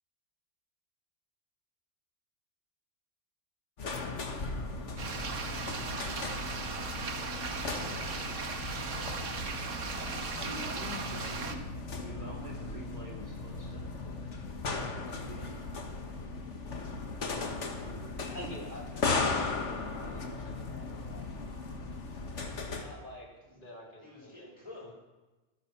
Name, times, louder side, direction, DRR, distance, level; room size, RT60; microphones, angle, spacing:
sound 1, 3.8-22.8, left 3 dB, 60° left, 1.8 m, -37 dB
sound 2, 5.0-11.5, right 5 dB, 65° right, 1.5 m, -37 dB
voice 1, 7.0-8.5 23.4-23.5 24.0-24.9, left 2 dB, 20° left, -3 dB, 5.1 m, -52 dB
voice 2, 10.4-13.9 14.9-15.8 17.8-18.2, equal, 35° right, -2 dB, 2.3 m, -46 dB
voice 3, 18.2-21.3 22.7-24.9, equal, 40° left, -3 dB, 3.6 m, -48 dB
15.0 x 11.0 x 6.0 m, 1.1 s
omnidirectional pair, 1.4 m